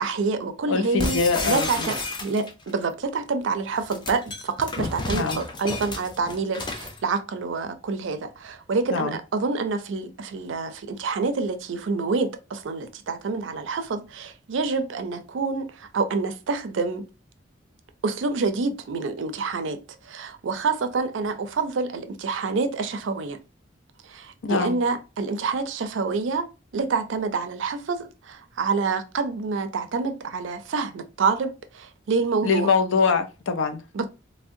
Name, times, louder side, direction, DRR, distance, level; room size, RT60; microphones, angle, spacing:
voice 1, 0.0-17.1 18.0-23.4 24.0-26.5 26.7-32.7 33.9-34.1, right 4 dB, 70° right, 0.4 m, -27 dB
voice 2, 0.7-1.9 5.1-5.4 8.9-9.2 24.4-24.8 32.4-33.8, left 5 dB, 85° left, 0.5 m, -23 dB
sound 1, 1.0-2.7 3.7-7.0, left 2 dB, 25° left, 0.5 m, -31 dB
3.5 x 2.1 x 2.5 m
head